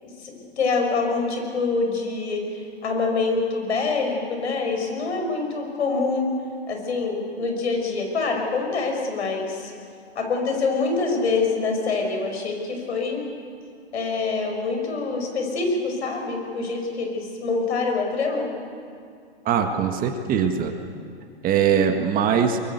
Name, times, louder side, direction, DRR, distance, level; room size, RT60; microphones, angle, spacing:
voice 1, 0.0-6.3 6.7-9.7 10.1-13.3 13.9-18.5, left 4 dB, 80° left, 3 dB, 6.2 m, -25 dB
voice 2, 19.5-20.7 21.4-22.6, right 7 dB, 25° right, 5 dB, 1.7 m, -21 dB
23.5 x 23.0 x 8.1 m, 2.3 s
hypercardioid pair, 125°, 33 cm